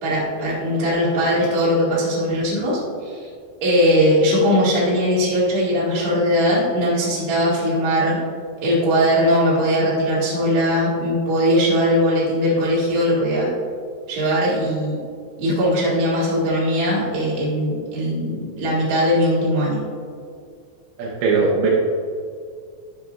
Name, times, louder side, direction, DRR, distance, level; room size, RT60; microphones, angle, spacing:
voice 1, 0.0-3.3 3.6-8.2 8.6-13.5 14.1-15.0 15.4-19.8, equal, 45° right, -7 dB, 2.8 m, -20 dB
voice 2, 21.0-21.7, right 4 dB, 75° right, -4 dB, 3.1 m, -19 dB
10.5 x 7.3 x 2.5 m, 2.2 s
omnidirectional pair, 5.6 m